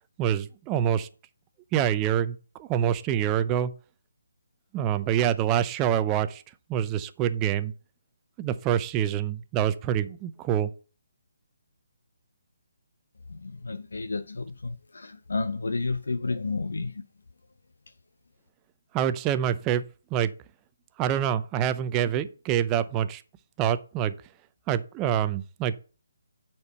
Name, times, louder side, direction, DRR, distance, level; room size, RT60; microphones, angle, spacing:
voice 1, 0.2-1.1 1.7-3.7 4.7-6.4 6.7-7.7 8.4-10.7 18.9-19.8 20.1-20.3 21.0-23.2 23.6-24.1 24.7-25.8, right 10 dB, 20° right, 0.6 m, -26 dB
voice 2, 13.3-17.0, left 3 dB, 70° left, 0.7 m, -31 dB
9.5 x 4.5 x 5.7 m
figure-of-eight pair, 145°, 0 cm